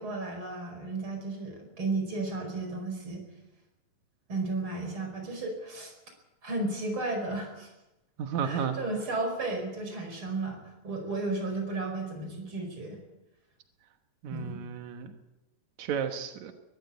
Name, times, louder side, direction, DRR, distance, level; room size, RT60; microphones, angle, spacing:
voice 1, 0.0-3.2 4.3-5.9 6.4-7.7 8.4-13.0 14.3-14.6, right 2 dB, 30° right, 4 dB, 5.4 m, -34 dB
voice 2, 8.2-8.8 14.2-15.1 15.8-16.5, right 7 dB, 80° right, 6 dB, 1.6 m, -32 dB
23.0 x 14.0 x 8.4 m, 1.0 s
omnidirectional pair, 5.3 m